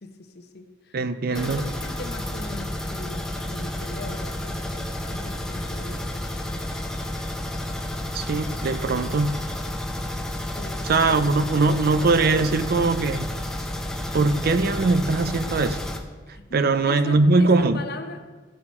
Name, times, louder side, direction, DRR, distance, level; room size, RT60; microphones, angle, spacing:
voice 1, 0.0-1.0 1.3-6.9 10.5-11.5 16.3-18.3, left 2 dB, 60° left, 0.9 m, -40 dB
voice 2, 0.9-1.6 8.1-9.4 10.8-13.3 14.1-15.8 16.5-17.8, right 3 dB, 55° right, 0.5 m, -21 dB
sound 1, 1.3-16.0, left 1 dB, 5° left, 0.7 m, -31 dB
15.0 x 5.9 x 4.4 m
head